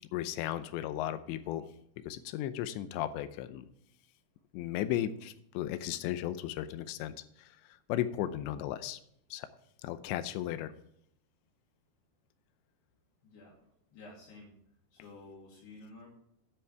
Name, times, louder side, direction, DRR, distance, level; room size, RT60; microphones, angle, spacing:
voice 1, 0.0-1.6 2.1-3.7 4.5-7.5 7.9-9.0 9.3-9.5 9.8-10.7, left 12 dB, 90° left, 12 dB, 3.0 m, -35 dB
voice 2, 13.2-14.5 14.9-16.1, left 2 dB, 70° left, -5 dB, 4.3 m, -52 dB
10.5 x 9.5 x 3.4 m, 0.73 s
omnidirectional pair, 5.1 m